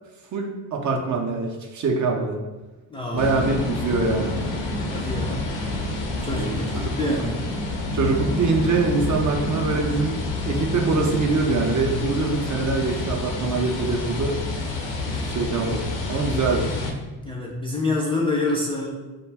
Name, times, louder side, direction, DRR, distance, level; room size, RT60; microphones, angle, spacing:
voice 1, 0.3-2.4 3.1-4.3 6.2-7.1 7.9-10.2 10.4-14.4 15.1-16.7, right 3 dB, 40° right, 1 dB, 0.5 m, -24 dB
voice 2, 2.9-3.3 4.9-5.4 6.2-7.4 17.2-19.1, left 2 dB, 10° left, -4 dB, 0.4 m, -27 dB
sound 1, 3.2-16.9, left 2 dB, 60° left, 0.7 m, -28 dB
2.2 x 2.2 x 3.3 m, 1.2 s
hypercardioid pair, 50°, 49 cm